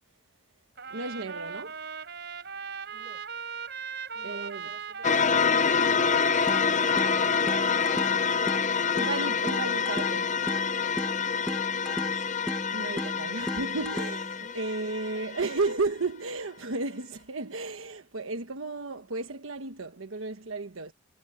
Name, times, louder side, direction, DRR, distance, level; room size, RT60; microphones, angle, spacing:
Trumpet, 0.8-8.5, right 6 dB, 55° right, 4.2 m, -39 dB
voice 1, 0.9-1.8 4.2-4.7 8.9-10.3 12.7-20.9, right 3 dB, 85° right, 1.2 m, -33 dB
voice 2, 2.9-3.2 4.1-9.1 11.7-12.3 14.4-15.3 20.2-20.3, right 2 dB, 35° right, 6.1 m, -55 dB
sound 1, 5.0-15.7, left 6 dB, 35° left, 0.6 m, -27 dB
sound 2, 6.5-14.5, equal, 5° left, 1.2 m, -37 dB
head